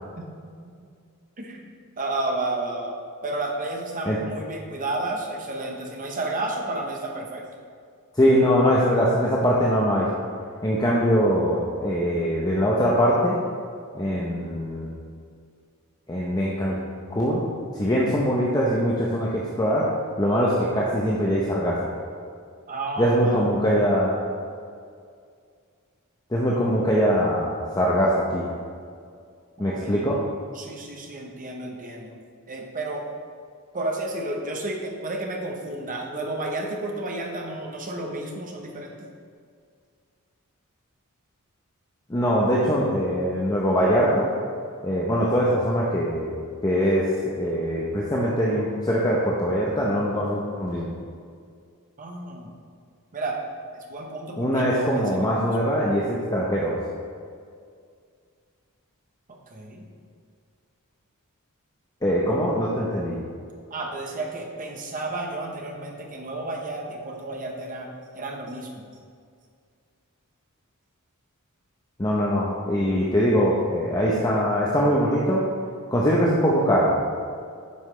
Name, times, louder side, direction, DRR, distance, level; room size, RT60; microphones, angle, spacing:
voice 1, 2.0-2.9 3.2-7.5 22.7-23.4 26.5-26.7 29.6-30.0 30.5-32.2 32.5-33.0 33.7-39.1 52.0-52.5 53.1-53.4 53.7-55.5 59.3-59.9 63.7-68.9, right 2 dB, 40° right, 1 dB, 0.9 m, -32 dB
voice 2, 8.2-10.1 10.6-13.4 13.9-14.9 16.1-16.8 17.1-17.4 17.7-19.9 20.2-21.9 23.0-24.1 26.3-28.5 29.6-30.2 42.1-44.3 44.8-46.3 46.6-50.9 54.4-56.8 62.0-63.2 72.0-75.4 75.9-76.9, equal, 20° left, -5 dB, 0.7 m, -22 dB
9.6 x 5.6 x 3.2 m, 2.2 s
head